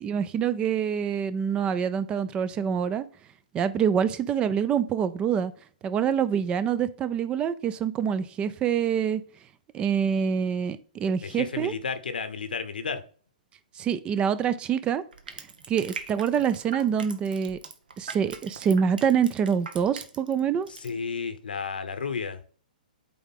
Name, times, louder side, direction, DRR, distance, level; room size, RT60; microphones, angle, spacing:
voice 1, 0.0-3.0 3.5-5.5 5.8-9.2 9.7-11.7 13.8-15.0 15.7-17.6 18.0-20.7, right 7 dB, 20° right, 0.4 m, -26 dB
voice 2, 11.2-13.0 20.7-22.4, left 5 dB, 80° left, 1.0 m, -32 dB
Crushing, 15.1-20.4 20.7-20.9, right 5 dB, 75° right, 1.1 m, -41 dB
8.5 x 3.6 x 3.6 m
hypercardioid pair, 130°, 5 cm